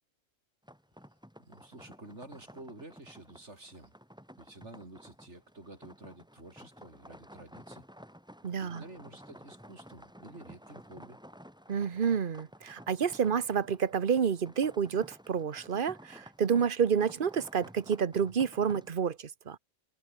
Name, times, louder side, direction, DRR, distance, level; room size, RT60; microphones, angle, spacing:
sound 1, 0.6-18.9, equal, 5° right, 6.8 m, -53 dB
voice 1, 1.4-3.9 4.4-7.8 8.6-11.2, right 2 dB, 65° right, 6.2 m, -50 dB
voice 2, 8.4-8.8 11.7-19.6, right 7 dB, 45° right, 1.1 m, -29 dB
omnidirectional pair, 1.3 m